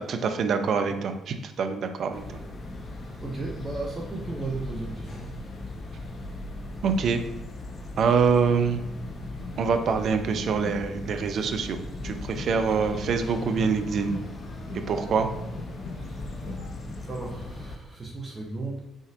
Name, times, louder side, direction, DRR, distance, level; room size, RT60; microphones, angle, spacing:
voice 1, 0.0-2.4 6.8-7.2 8.0-8.8 9.6-14.2 14.9-15.3, right 5 dB, 55° right, 7 dB, 0.5 m, -25 dB
sound 1, 2.1-17.8, left 2 dB, 40° left, 0.8 m, -38 dB
voice 2, 2.9-5.3 15.9-16.5 17.1-18.8, right 3 dB, 30° right, -2 dB, 0.9 m, -36 dB
sound 2, 9.4-11.4 11.7-16.7, left 3 dB, 55° left, 1.3 m, -44 dB
5.0 x 3.8 x 2.5 m, 0.93 s
figure-of-eight pair, 45°, 0 cm